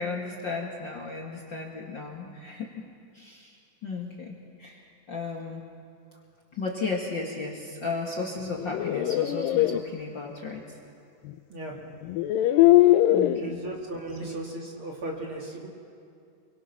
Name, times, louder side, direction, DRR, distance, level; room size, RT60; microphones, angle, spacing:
voice 1, 0.0-2.9 3.1-5.7 6.5-10.8 13.1-13.7 14.2-14.3, left 4 dB, 40° left, -2 dB, 2.3 m, -35 dB
sound 1, 8.5-9.8 11.3-11.4 12.0-13.4, left 14 dB, 90° left, 2.4 m, -21 dB
voice 2, 13.4-15.7, right 2 dB, 40° right, -1 dB, 3.1 m, -36 dB
29.5 x 23.5 x 6.1 m, 2.4 s
omnidirectional pair, 3.9 m